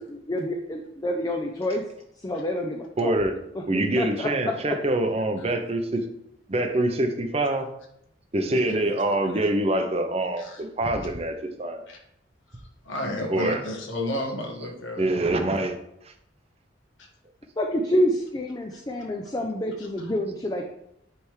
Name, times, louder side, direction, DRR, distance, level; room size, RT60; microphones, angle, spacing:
voice 1, 0.1-1.8 2.2-3.1 4.0-4.5 17.6-20.7, left 1 dB, 20° left, 2 dB, 0.5 m, -27 dB
voice 2, 3.0-3.4 3.7-6.0 6.5-7.7 8.3-11.8 13.3-13.6 15.0-15.8 16.0-16.1, right 1 dB, 35° right, 6 dB, 0.7 m, -25 dB
voice 3, 8.5-8.9 9.3-9.5 10.4-10.6 11.9-12.0 12.5-15.1 18.7-18.8 19.8-20.2, left 1 dB, 85° left, 1 dB, 1.4 m, -33 dB
9.6 x 3.4 x 3.2 m, 0.77 s
head